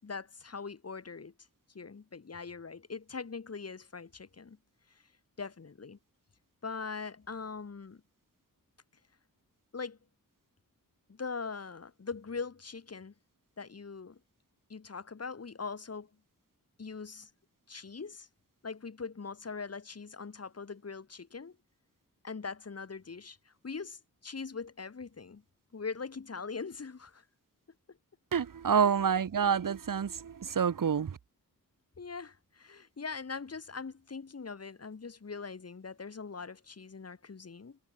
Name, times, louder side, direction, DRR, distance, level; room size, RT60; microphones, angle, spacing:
voice 1, 0.0-1.3 1.7-4.6 4.9-5.0 5.4-6.0 6.6-8.0 9.7-10.0 11.1-13.1 13.6-14.2 14.7-16.1 16.8-17.3 17.7-18.3 18.6-21.6 22.2-25.4 25.7-27.2 27.9-28.0 28.7-29.0 32.0-37.8, left 5 dB, 45° left, 4.6 m, -41 dB
voice 2, 28.3-31.2, right 7 dB, 70° right, 1.9 m, -28 dB
wide cardioid pair, 155°, 34 cm